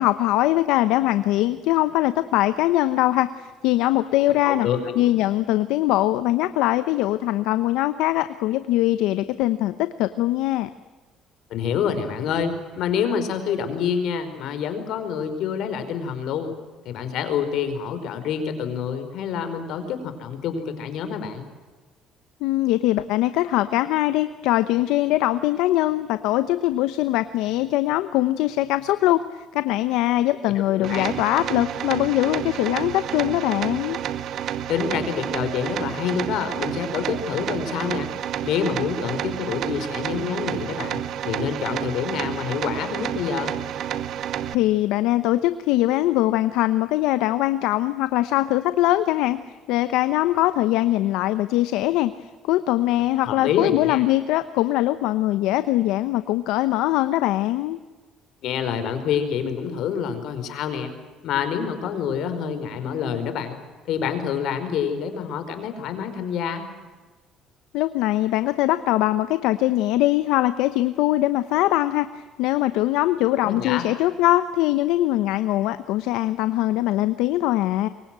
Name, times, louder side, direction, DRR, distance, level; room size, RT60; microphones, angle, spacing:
voice 1, 0.0-4.7 5.0-10.7 22.4-34.0 44.5-49.4 49.7-52.1 52.5-57.8 67.7-77.9, left 15 dB, 90° left, 12 dB, 1.0 m, -22 dB
voice 2, 4.4-5.1 11.5-16.5 16.8-21.5 30.4-31.1 34.7-38.1 38.4-43.6 53.2-54.0 58.4-60.9 61.2-63.6 63.9-66.7 73.4-73.8, left 7 dB, 70° left, 8 dB, 4.7 m, -27 dB
sound 1, 30.8-44.5, right 10 dB, 65° right, 1.4 m, -30 dB
27.0 x 23.5 x 7.6 m, 1.3 s
cardioid pair, 115°, 0 cm